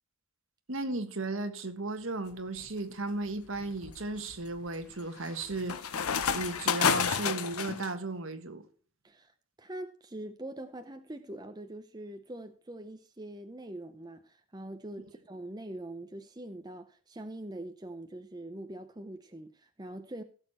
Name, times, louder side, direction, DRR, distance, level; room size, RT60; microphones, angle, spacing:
voice 1, 0.7-5.9 6.3-8.6, right 2 dB, 65° right, 1.6 m, -35 dB
sound 1, 2.3-2.7 3.3-7.9, left 7 dB, 85° left, 0.9 m, -31 dB
voice 2, 9.6-20.2, right 1 dB, 20° right, 0.7 m, -43 dB
16.0 x 6.7 x 4.3 m
head